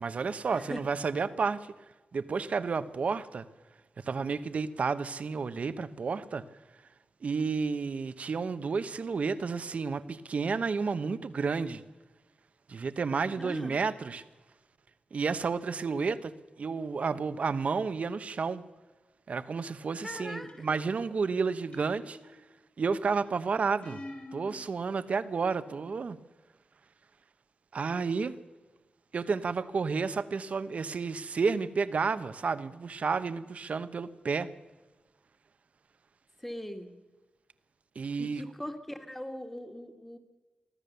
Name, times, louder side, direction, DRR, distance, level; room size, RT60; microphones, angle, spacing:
voice 1, 0.0-1.7 2.1-3.5 4.0-6.4 7.2-11.8 12.7-14.2 15.1-18.6 19.3-22.4 22.8-24.0 24.3-26.2 27.7-28.3 29.1-34.5 37.9-38.4, right 5 dB, 60° right, 13 dB, 1.0 m, -31 dB
voice 2, 13.4-13.8 20.0-20.5 36.4-36.9 38.2-40.2, left 1 dB, 5° left, 6 dB, 2.0 m, -40 dB
sound 1, 20.5-21.0 21.7-22.6 23.8-24.6, left 1 dB, 55° left, 4.4 m, -46 dB
24.5 x 15.5 x 6.9 m, 1.2 s
wide cardioid pair, 100°, 3 cm